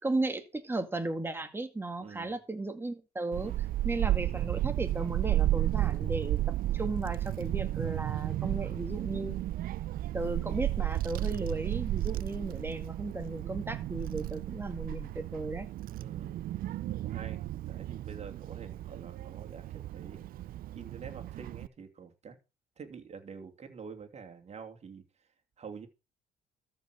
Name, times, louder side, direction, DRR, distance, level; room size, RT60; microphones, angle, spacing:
voice 1, 0.0-3.5 3.8-6.4 6.7-9.3 10.1-15.7, right 2 dB, 15° right, 2.1 m, -35 dB
voice 2, 2.0-2.3 3.4-3.6 16.0-16.4 16.9-20.2 20.7-22.4 22.8-25.0 25.6-25.9, right 6 dB, 40° right, 2.8 m, -47 dB
Child speech kid speaking / Wind, 3.3-21.7, right 14 dB, 60° right, 0.5 m, -33 dB
13.5 x 5.5 x 6.3 m
cardioid pair, 110°, 17 cm